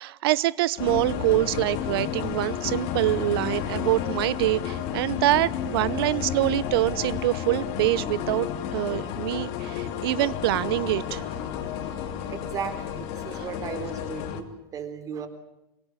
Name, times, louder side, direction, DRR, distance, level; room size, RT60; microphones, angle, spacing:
voice 1, 0.0-11.2 13.3-13.4, right 16 dB, 75° right, 21 dB, 0.9 m, -25 dB
sound 1, 0.8-14.4, left 9 dB, 50° left, 2.8 m, -31 dB
voice 2, 12.3-15.3, right 6 dB, 25° right, 8 dB, 3.8 m, -36 dB
24.5 x 23.0 x 8.5 m, 0.88 s
supercardioid pair, 150°, 13 cm